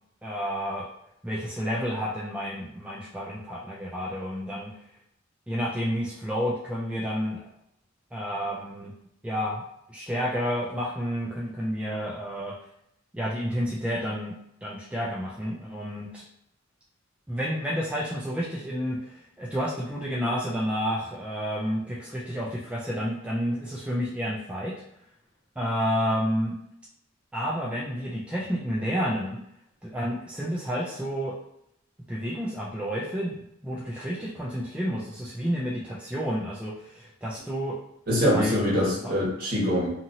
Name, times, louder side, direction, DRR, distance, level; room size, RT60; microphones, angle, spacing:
voice 1, 0.2-0.9 1.2-4.7 5.5-7.5 8.1-8.9 9.2-9.6 9.9-12.5 13.1-14.4 14.6-16.2 17.3-24.7 25.6-26.5 27.3-29.4 29.8-31.3 32.1-37.8 38.3-39.1, equal, 5° right, -5 dB, 0.4 m, -30 dB
voice 2, 38.1-39.9, equal, 50° right, -6 dB, 1.4 m, -24 dB
2.8 x 2.7 x 2.7 m, 0.77 s
head